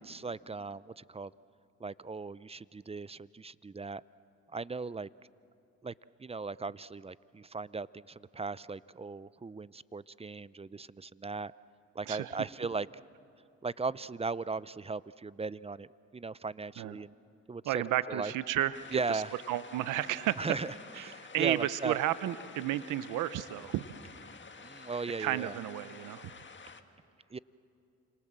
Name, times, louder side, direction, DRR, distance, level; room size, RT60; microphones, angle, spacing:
voice 1, 0.0-1.3 1.8-4.0 4.5-5.1 5.8-5.9 6.2-11.5 11.9-12.9 13.6-15.9 16.1-17.1 17.5-17.8 18.1-18.3 18.9-19.3 20.4-20.7 21.0-22.0 24.6-25.6 27.3-27.4, right 4 dB, 20° right, 19 dB, 0.6 m, -37 dB
voice 2, 17.6-19.2 19.5-20.4 21.0-23.9 25.2-26.3, right 13 dB, 85° right, 14 dB, 0.9 m, -32 dB
sound 1, 18.7-26.8, left 5 dB, 40° left, 1.7 m, -51 dB
29.0 x 26.5 x 7.5 m, 2.7 s
supercardioid pair, 60°, 30 cm